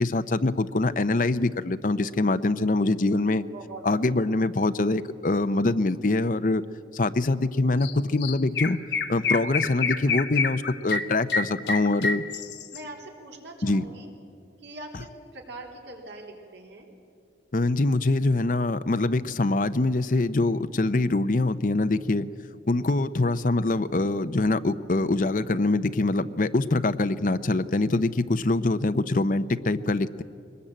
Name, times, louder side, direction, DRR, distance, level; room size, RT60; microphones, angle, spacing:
voice 1, 0.0-3.4 3.8-6.6 6.9-8.8 9.1-12.2 13.6-13.8 17.5-22.3 22.7-30.2, left 2 dB, 50° left, 12 dB, 0.7 m, -24 dB
voice 2, 3.5-3.8 12.7-14.1 14.6-16.9, right 2 dB, 85° right, 1 dB, 3.9 m, -42 dB
Chirp tweet, 7.8-7.9 8.2-12.8, left 5 dB, 80° left, 1.3 m, -27 dB
22.0 x 20.0 x 8.8 m, 2.4 s
head